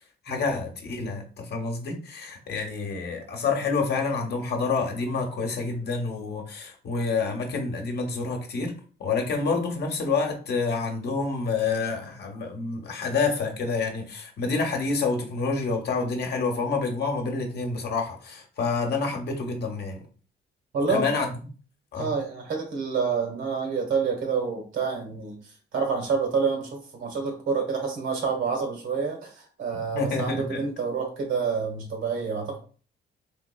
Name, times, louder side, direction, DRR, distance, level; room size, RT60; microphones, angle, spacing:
voice 1, 0.2-8.7 9.0-20.1 20.9-21.3 21.9-22.1 29.9-30.7, left 4 dB, 55° left, 0.9 m, -28 dB
voice 2, 20.7-21.1 21.9-32.6, right 5 dB, 75° right, 1.4 m, -28 dB
3.4 x 2.9 x 2.3 m
cardioid pair, 90°, 20 cm